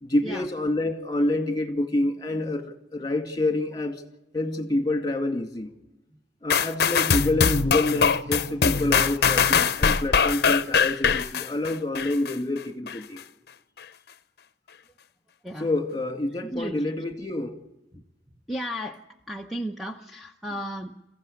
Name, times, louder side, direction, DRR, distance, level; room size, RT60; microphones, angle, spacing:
voice 1, 0.0-4.0 4.3-5.7 6.4-13.2 15.6-17.6, left 2 dB, 25° left, 2.2 m, -27 dB
sound 1, 6.5-12.3 12.9-13.0, left 6 dB, 60° left, 0.7 m, -22 dB
voice 2, 16.4-16.8 17.9-18.0 18.5-19.0 19.3-21.0, equal, ahead, 0.9 m, -34 dB
22.5 x 15.5 x 8.5 m
head